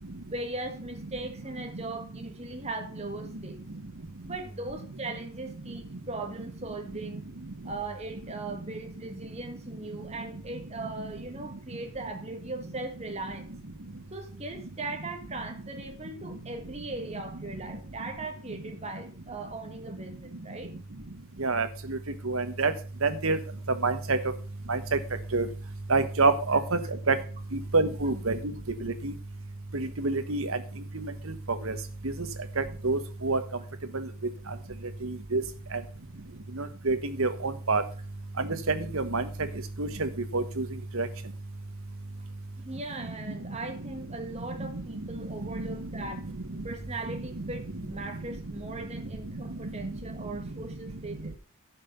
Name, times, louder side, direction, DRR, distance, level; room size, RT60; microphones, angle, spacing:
voice 1, 0.3-3.6 4.2-7.2 7.6-13.5 14.1-20.7 42.6-46.3 46.6-51.3, right 2 dB, 30° right, 5 dB, 1.7 m, -39 dB
voice 2, 21.4-22.0 22.2-22.7 23.0-23.4 23.8-24.2 24.7-24.8 25.3-25.5 25.9-26.8 27.1-27.2 27.7-28.4 28.8-29.1 29.7-30.6 30.9-31.1 31.6-31.7 32.6-33.4 33.9-34.0 35.0-35.4 36.6-37.8 38.4-39.2 39.8-40.7 40.9-41.1 45.5-45.7 45.9-46.0 49.8-49.9, right 3 dB, 70° right, 10 dB, 1.3 m, -27 dB
11.0 x 5.7 x 5.6 m, 0.38 s
head